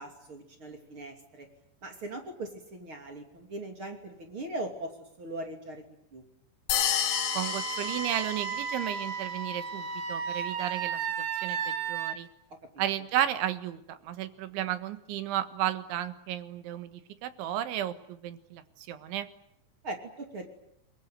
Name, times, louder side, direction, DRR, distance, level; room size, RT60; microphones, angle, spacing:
voice 1, 0.0-1.5 1.8-4.9 5.2-5.9 6.1-6.2 19.8-20.5, right 2 dB, 30° right, 4 dB, 3.1 m, -40 dB
sound 1, 6.7-9.0, left 9 dB, 85° left, 4.5 m, -30 dB
Wind instrument woodwind instrument, 7.1-12.2, right 7 dB, 55° right, 2.9 m, -34 dB
voice 2, 7.4-11.0 11.4-12.3 12.8-18.6 18.9-19.3, right 12 dB, 85° right, 11 dB, 3.9 m, -33 dB
29.0 x 22.0 x 9.4 m, 0.74 s
omnidirectional pair, 5.3 m